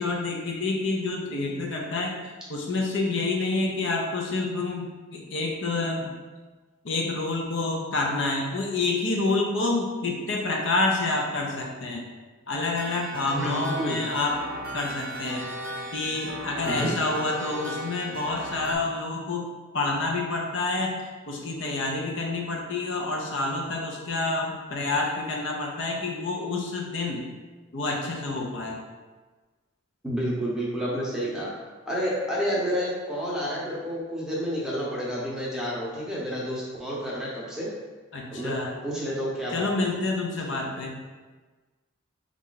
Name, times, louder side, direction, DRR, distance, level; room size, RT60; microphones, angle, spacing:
voice 1, 0.0-2.2 2.5-6.1 6.8-12.0 12.5-15.4 15.9-19.5 19.7-27.3 27.7-28.8 38.1-38.8 39.5-41.0, left 3 dB, 60° left, -1 dB, 0.6 m, -28 dB
sound 1, 12.8-18.8, right 1 dB, 45° right, 0.9 m, -36 dB
voice 2, 13.3-14.0 16.6-17.1 30.0-31.5 31.9-37.7 38.3-38.6 38.8-39.7, equal, 5° right, -6 dB, 0.7 m, -29 dB
4.2 x 2.4 x 3.8 m, 1.3 s
head